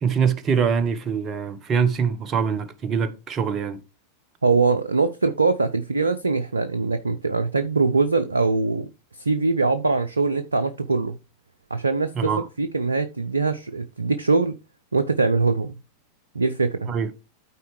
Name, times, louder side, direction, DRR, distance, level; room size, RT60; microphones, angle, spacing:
voice 1, 0.0-3.8 12.1-12.5 16.9-17.1, right 6 dB, 30° right, 1.0 m, -23 dB
voice 2, 4.4-8.9 9.2-11.2 11.7-12.3 12.6-14.6 14.9-15.8 16.3-16.9, right 3 dB, 85° right, 0.5 m, -22 dB
12.5 x 4.4 x 3.2 m
figure-of-eight pair, 90°, 0 cm